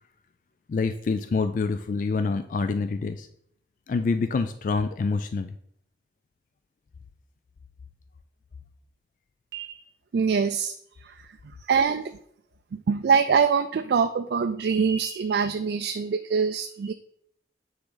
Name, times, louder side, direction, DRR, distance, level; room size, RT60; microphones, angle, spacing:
voice 1, 0.7-3.3 3.9-5.5, left 4 dB, 45° left, 10 dB, 0.3 m, -26 dB
voice 2, 10.1-10.7 11.7-12.2 12.7-16.9, right 6 dB, 65° right, 8 dB, 0.3 m, -24 dB
8.8 x 3.7 x 3.9 m, 0.69 s
head